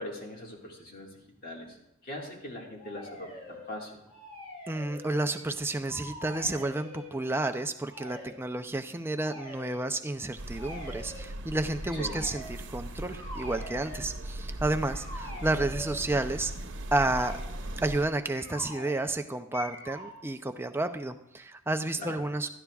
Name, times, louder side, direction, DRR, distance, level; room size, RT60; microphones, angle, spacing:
voice 1, 0.0-1.8 2.0-4.0 11.9-12.2 22.0-22.2, left 1 dB, 45° left, -1 dB, 2.0 m, -41 dB
sound 1, 2.8-3.7 4.1-5.6 5.8-7.1 7.9-8.4 9.2-9.8 10.5-11.3 11.8-12.6 13.1-14.0 14.9-16.1 17.0-17.5 18.3-19.2 19.5-20.2, left 1 dB, 30° left, 3.4 m, -44 dB
voice 2, 4.7-16.5 16.9-17.4 17.8-22.5, right 2 dB, 10° right, 7 dB, 0.5 m, -31 dB
sound 2, 10.4-18.1, right 1 dB, 60° right, 0.9 m, -39 dB
17.0 x 12.0 x 2.4 m, 0.84 s
head